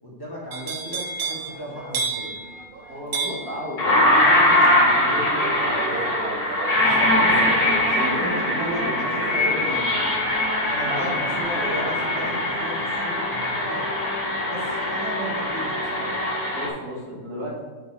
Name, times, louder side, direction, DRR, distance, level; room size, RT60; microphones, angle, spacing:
voice 1, 0.0-2.4 6.8-9.9 10.7-13.9 14.4-16.1, equal, 15° left, -7 dB, 1.7 m, -35 dB
sound 1, 0.5-12.5 12.8-13.2, right 4 dB, 60° right, 0.5 m, -34 dB
voice 2, 2.9-6.5 7.1-9.8 10.8-12.4 16.5-17.6, equal, 75° right, -6 dB, 2.7 m, -33 dB
sound 2, 3.1-3.2 3.8-16.7, left 1 dB, 90° left, 2.4 m, -22 dB
6.8 x 4.3 x 4.3 m, 1.4 s
omnidirectional pair, 1.6 m